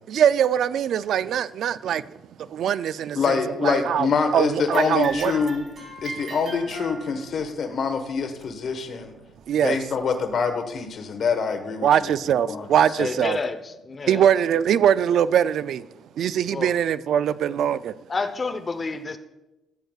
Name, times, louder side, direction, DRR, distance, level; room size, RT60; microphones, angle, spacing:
voice 1, 0.1-2.0 2.4-4.1 4.3-5.4 9.5-9.8 11.8-13.4 14.1-15.9 16.2-17.9, right 9 dB, 70° right, 0.3 m, -22 dB
voice 2, 3.1-5.6 6.0-9.1 9.6-12.1 12.5-12.7 13.0-13.1, left 5 dB, 60° left, 1.3 m, -25 dB
sound 1, 4.6-7.4 8.4-8.5 9.3-9.4 10.3-10.4, right 3 dB, 50° right, 3.7 m, -38 dB
voice 3, 13.0-14.3 16.5-16.7 18.1-19.2, left 4 dB, 35° left, 0.8 m, -29 dB
16.0 x 7.9 x 2.4 m
cardioid pair, 90°, 0 cm